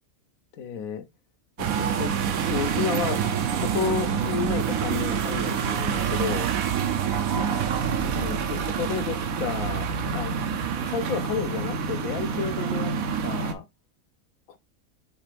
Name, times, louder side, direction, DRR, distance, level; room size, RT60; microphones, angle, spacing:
voice 1, 0.5-1.1 1.6-2.1 2.4-3.3 3.6-6.5 8.1-10.3 10.8-12.9 13.2-13.6 14.5-14.6, left 6 dB, 80° left, 1.1 m, -31 dB
sound 1, 1.6-13.5, right 7 dB, 80° right, 1.1 m, -27 dB
5.0 x 3.2 x 3.3 m
omnidirectional pair, 1.4 m